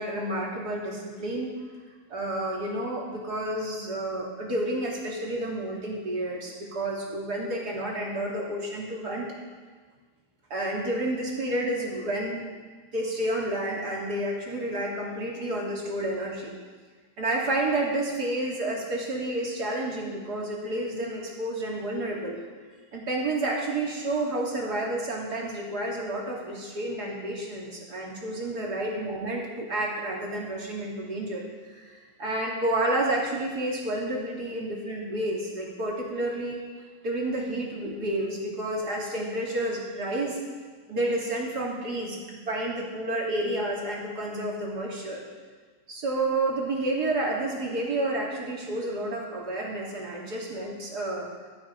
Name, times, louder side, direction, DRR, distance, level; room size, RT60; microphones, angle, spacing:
voice 1, 0.0-1.5 2.1-9.3 10.5-12.5 12.9-16.5 17.2-22.4 22.9-36.6 37.0-40.4 40.9-45.2 45.9-51.3, right 1 dB, 70° right, -3 dB, 3.2 m, -30 dB
16.0 x 13.0 x 4.5 m, 1.4 s
omnidirectional pair, 1.8 m